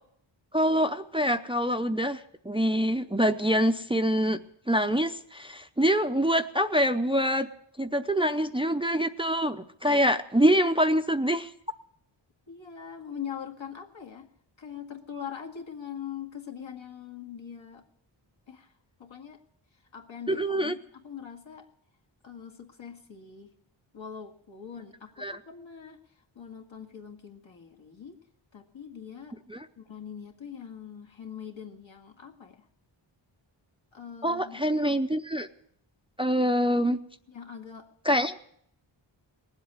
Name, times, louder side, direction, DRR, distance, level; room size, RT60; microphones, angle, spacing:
voice 1, 0.5-4.4 4.7-7.5 7.8-11.5 20.3-20.7 25.2-25.3 29.5-29.6 34.2-35.5 36.2-37.0 38.1-38.4, equal, 10° right, 8 dB, 0.6 m, -25 dB
voice 2, 12.5-14.3 14.6-17.8 18.5-18.7 19.0-19.4 19.7-21.7 22.2-23.5 23.9-28.2 28.5-29.4 29.8-32.7 33.9-34.8 37.3-37.9, left 8 dB, 65° left, 2 dB, 2.0 m, -42 dB
19.0 x 7.9 x 9.6 m, 0.68 s
wide cardioid pair, 95°, 49 cm